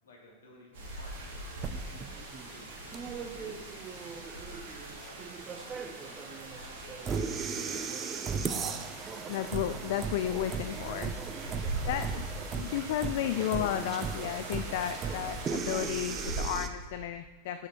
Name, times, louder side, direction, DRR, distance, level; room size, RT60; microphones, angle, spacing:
voice 1, 0.0-1.7 2.2-7.4 7.7-8.8 11.4-12.2, left 1 dB, 65° left, -2 dB, 2.1 m, -54 dB
sound 1, 0.7-16.4, right 2 dB, 55° right, 2.5 m, -42 dB
sound 2, 1.6-16.7, right 6 dB, 25° right, 0.6 m, -37 dB
voice 2, 9.3-11.1 11.8-12.1 12.5-17.7, left 12 dB, 50° left, 10 dB, 0.3 m, -33 dB
7.4 x 7.3 x 4.4 m, 1.4 s
figure-of-eight pair, 90°, 0 cm